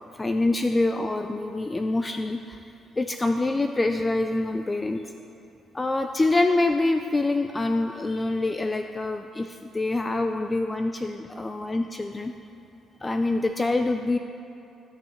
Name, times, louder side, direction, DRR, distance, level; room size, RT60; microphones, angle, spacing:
voice 1, 0.2-2.6 3.0-5.0 5.7-12.3 13.0-14.2, left 2 dB, 20° left, 6 dB, 0.3 m, -25 dB
15.0 x 5.6 x 3.1 m, 2.8 s
cardioid pair, 90°, 0 cm